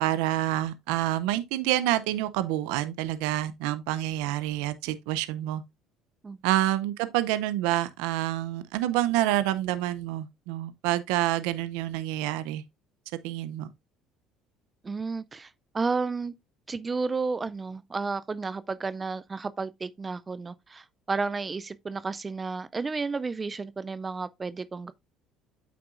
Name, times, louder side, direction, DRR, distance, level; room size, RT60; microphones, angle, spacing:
voice 1, 0.0-5.6 6.4-12.6 13.2-13.7, right 14 dB, 85° right, 0.5 m, -27 dB
voice 2, 14.8-16.3 16.7-24.9, right 4 dB, 20° right, 0.3 m, -32 dB
8.3 x 5.9 x 2.5 m
cardioid pair, 110°, 0 cm